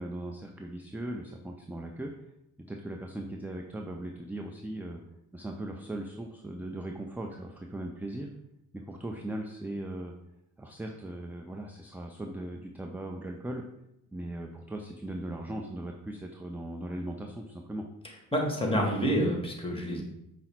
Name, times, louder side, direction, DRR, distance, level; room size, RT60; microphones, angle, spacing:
voice 1, 0.0-2.1 2.6-5.0 5.3-8.3 8.7-10.1 10.6-13.6 14.1-17.9, right 1 dB, 5° right, 2 dB, 0.4 m, -38 dB
voice 2, 18.3-20.0, equal, 15° left, 1 dB, 1.4 m, -28 dB
5.4 x 2.1 x 4.3 m, 0.83 s
supercardioid pair, 45°, 38 cm